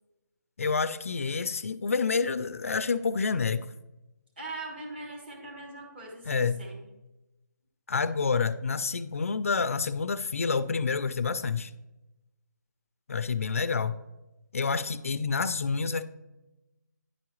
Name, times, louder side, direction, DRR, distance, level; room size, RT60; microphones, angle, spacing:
voice 1, 0.6-3.7 6.3-6.6 7.9-11.7 13.1-14.0 14.5-16.0, left 5 dB, 50° left, 13 dB, 0.3 m, -28 dB
voice 2, 4.4-6.3 6.6-6.8, right 2 dB, 35° right, 0 dB, 1.4 m, -40 dB
10.0 x 4.6 x 3.0 m, 0.99 s
hypercardioid pair, 175°, 10 cm